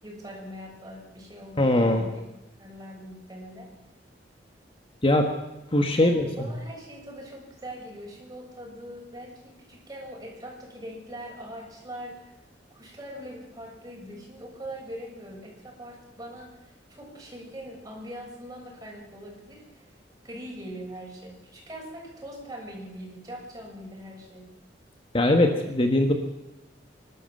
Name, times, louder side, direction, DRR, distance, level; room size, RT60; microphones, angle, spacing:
voice 1, 0.0-2.2 2.6-3.7 6.0-12.3 12.7-20.0 20.2-24.5, equal, 20° right, -1 dB, 7.3 m, -42 dB
voice 2, 1.6-2.0 5.0-5.3 5.7-6.3 25.1-26.1, left 1 dB, 30° left, 4 dB, 1.5 m, -21 dB
26.0 x 12.5 x 7.9 m, 0.99 s
head